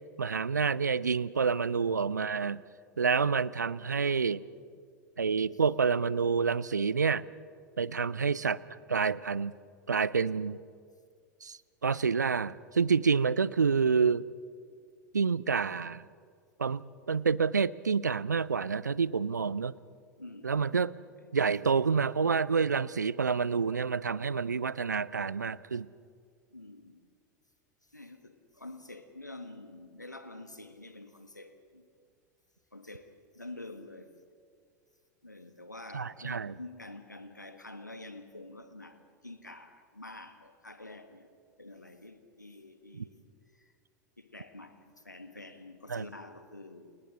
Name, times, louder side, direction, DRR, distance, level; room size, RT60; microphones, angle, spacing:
voice 1, 0.2-2.6 3.0-4.4 5.2-7.2 7.8-8.6 8.9-9.5 9.9-10.6 11.4-11.6 11.8-14.3 15.1-16.0 16.6-19.7 20.4-20.9 21.3-25.9 35.9-36.5 42.9-43.0 45.9-46.0, right 5 dB, 80° right, 21 dB, 0.6 m, -28 dB
voice 2, 7.9-8.2 20.2-20.7 26.5-27.0 27.9-31.8 32.7-34.1 35.2-41.3 41.6-43.7 44.2-47.0, left 2 dB, 90° left, 8 dB, 1.5 m, -48 dB
30.0 x 29.0 x 3.8 m, 2.2 s
figure-of-eight pair, 85°, 9 cm